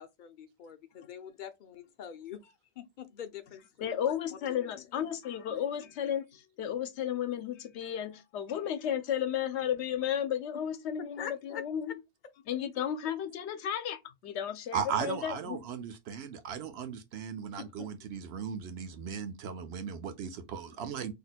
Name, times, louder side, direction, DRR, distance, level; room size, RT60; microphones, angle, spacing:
voice 1, 0.0-4.9 11.2-11.6 17.6-17.9, left 8 dB, 55° left, 0.6 m, -45 dB
voice 2, 3.8-12.0 12.5-15.6, left 9 dB, 80° left, 0.9 m, -33 dB
voice 3, 14.7-21.1, right 7 dB, 70° right, 0.8 m, -37 dB
2.8 x 2.1 x 4.0 m
omnidirectional pair, 1.1 m